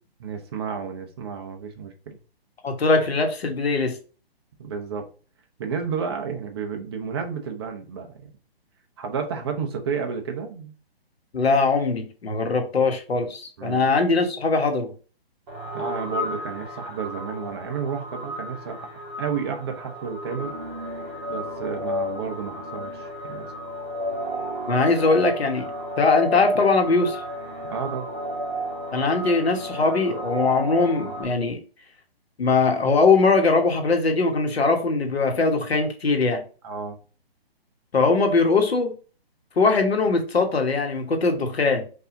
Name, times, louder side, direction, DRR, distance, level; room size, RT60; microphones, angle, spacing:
voice 1, 0.2-2.2 4.6-5.1 5.6-8.3 9.0-10.7 13.6-13.8 15.7-18.9 19.2-20.6 21.3-23.5 27.7-28.1 36.6-37.0, right 6 dB, 25° right, 4 dB, 0.6 m, -31 dB
voice 2, 2.6-4.0 11.3-14.9 24.7-25.7 26.0-27.2 28.9-31.6 32.4-36.4 37.9-38.9 39.6-41.8, left 3 dB, 80° left, 4 dB, 1.4 m, -21 dB
sound 1, 15.5-31.2, equal, 45° right, 1.5 m, -33 dB
4.8 x 2.7 x 3.8 m, 0.37 s
hypercardioid pair, 155°, 31 cm